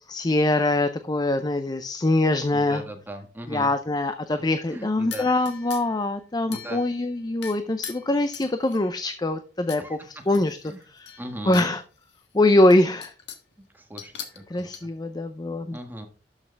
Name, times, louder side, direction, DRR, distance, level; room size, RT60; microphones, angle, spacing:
voice 1, 0.1-2.8 3.5-10.0 10.3-10.6 10.9-11.2 11.5-11.8 12.3-13.1 14.5-15.8, left 2 dB, 25° left, 9 dB, 0.5 m, -23 dB
voice 2, 2.5-3.7 4.7-5.3 6.5-6.8 9.8-10.0 10.7-10.9 11.2-11.8 13.7-14.9 15.7-16.1, right 1 dB, 10° right, 4 dB, 1.4 m, -38 dB
sound 1, 5.1-6.0 6.5-7.1 7.4-9.0 9.7-9.8 10.2-11.7 12.1-12.2 12.7-13.5 14.0-14.8, left 9 dB, 85° left, 1.5 m, -40 dB
12.0 x 6.5 x 3.4 m, 0.37 s
head